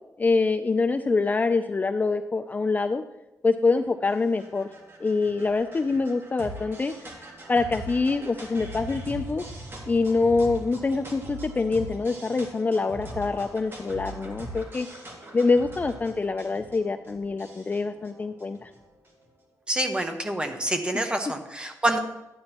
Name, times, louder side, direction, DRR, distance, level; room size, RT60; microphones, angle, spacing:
voice 1, 0.2-3.0 3.4-4.7 5.0-7.0 7.5-9.4 9.9-14.9 15.3-18.7, left 3 dB, 25° left, 7 dB, 0.4 m, -25 dB
sound 1, 3.7-19.3, right 1 dB, 40° right, 2.1 m, -42 dB
voice 2, 19.7-22.0, right 1 dB, 15° right, 5 dB, 1.1 m, -27 dB
12.5 x 9.4 x 3.0 m, 0.97 s
cardioid pair, 100°, 6 cm